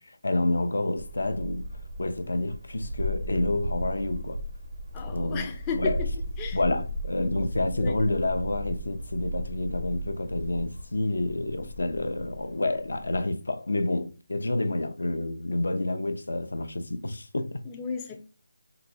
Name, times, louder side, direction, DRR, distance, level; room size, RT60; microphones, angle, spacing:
voice 1, 0.2-1.6 2.0-4.4 5.1-5.5 5.7-6.0 6.5-17.6, left 2 dB, 75° left, 0.5 m, -28 dB
sound 1, 1.0-13.2, equal, 85° right, 0.7 m, -36 dB
voice 2, 4.9-6.1 6.4-6.6 7.2-7.3 7.7-8.0 17.7-18.2, left 5 dB, 15° left, 0.3 m, -34 dB
3.8 x 2.2 x 2.6 m
figure-of-eight pair, 165°, 0 cm